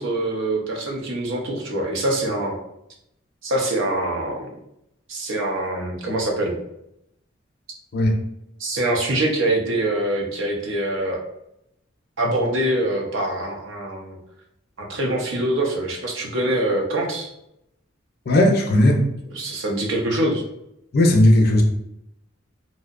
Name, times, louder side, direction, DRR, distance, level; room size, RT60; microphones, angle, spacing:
voice 1, 0.0-2.6 3.4-4.5 5.1-6.5 8.6-11.2 12.2-14.2 14.8-17.3 19.3-20.4, right 1 dB, 80° right, 1 dB, 0.6 m, -24 dB
voice 2, 18.3-19.0 20.9-21.6, left 1 dB, 50° left, 2 dB, 0.4 m, -16 dB
2.6 x 2.0 x 2.4 m, 0.80 s
head